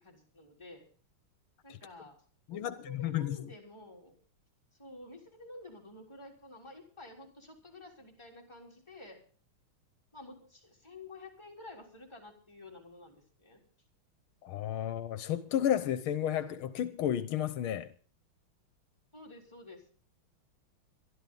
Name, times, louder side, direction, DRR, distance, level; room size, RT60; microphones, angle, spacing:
voice 1, 0.0-0.8 1.6-2.2 2.5-4.1 4.8-9.2 10.1-13.6 19.1-19.9, left 2 dB, 15° left, 3.7 m, -51 dB
voice 2, 2.5-3.4 14.4-17.9, left 10 dB, 85° left, 1.7 m, -32 dB
23.0 x 12.5 x 3.9 m
omnidirectional pair, 2.3 m